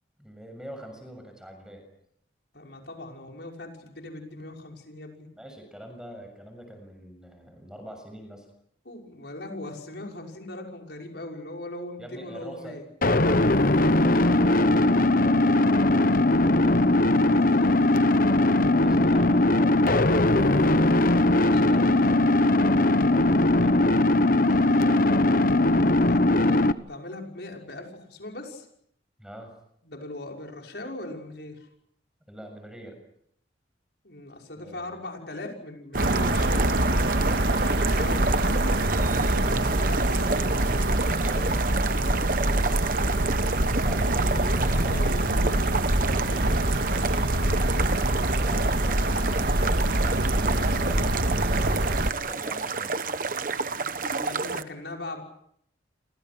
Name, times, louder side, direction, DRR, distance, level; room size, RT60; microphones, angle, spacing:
voice 1, 0.2-1.8 5.3-8.5 12.0-12.8 13.5-16.9 18.6-22.0 22.5-25.3 29.2-29.5 32.3-33.0 34.6-35.0 40.8-45.0 48.3-52.9, equal, 5° right, 5 dB, 7.0 m, -44 dB
voice 2, 2.5-5.3 8.8-12.8 16.6-16.8 17.1-18.1 21.4-22.2 25.9-28.7 29.8-31.7 34.0-40.5 44.0-46.6 54.2-55.2, left 2 dB, 65° left, 1 dB, 6.0 m, -40 dB
sound 1, 13.0-26.7, left 2 dB, 50° left, 1.1 m, -20 dB
sound 2, 35.9-54.6, right 4 dB, 45° right, 1.1 m, -31 dB
sound 3, 35.9-52.1, right 1 dB, 65° right, 2.0 m, -24 dB
29.5 x 26.5 x 6.2 m, 0.70 s
head